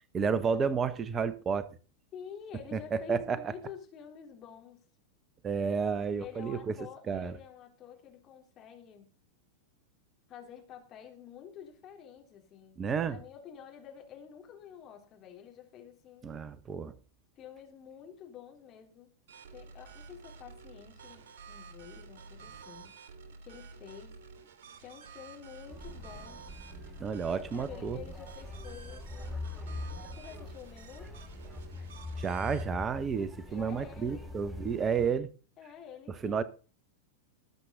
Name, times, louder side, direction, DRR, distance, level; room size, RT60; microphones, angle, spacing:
voice 1, 0.1-1.7 2.7-3.4 5.4-6.6 7.1-7.3 12.8-13.2 16.2-16.9 27.0-28.0 32.2-35.3 36.2-36.4, right 6 dB, 20° right, 1.1 m, -31 dB
voice 2, 2.1-4.9 6.2-9.1 10.3-12.8 13.1-16.3 17.4-19.1 19.5-22.9 23.4-24.2 24.7-26.4 27.3-29.5 30.1-31.1 33.4-34.3 35.6-36.4, left 8 dB, 30° left, 3.8 m, -49 dB
sound 1, 19.3-32.6, right 5 dB, 55° right, 2.8 m, -51 dB
sound 2, 25.7-35.1, left 2 dB, 5° right, 2.5 m, -43 dB
19.5 x 7.8 x 4.0 m
figure-of-eight pair, 90°, 0 cm